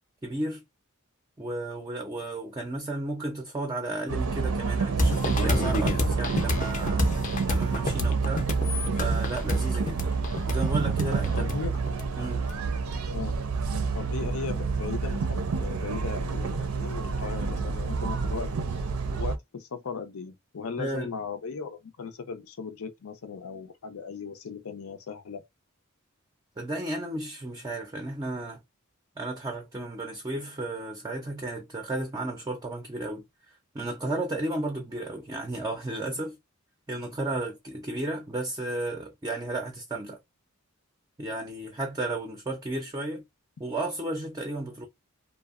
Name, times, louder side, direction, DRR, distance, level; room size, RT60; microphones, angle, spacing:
voice 1, 0.2-0.6 1.4-7.1 7.5-8.5 9.0-10.1 10.5-11.5 12.2-12.5 20.8-21.1 26.6-28.6 29.2-36.4 36.9-40.2 41.2-43.2 43.6-44.9, right 2 dB, 20° right, 0.4 m, -33 dB
sound 1, 4.1-19.4, right 4 dB, 85° right, 0.5 m, -28 dB
sound 2, 5.0-12.5, left 2 dB, 35° left, 0.5 m, -29 dB
voice 2, 11.3-11.7 13.1-13.4 13.9-18.5 19.2-25.4, left 5 dB, 85° left, 0.6 m, -37 dB
2.7 x 2.1 x 2.3 m
head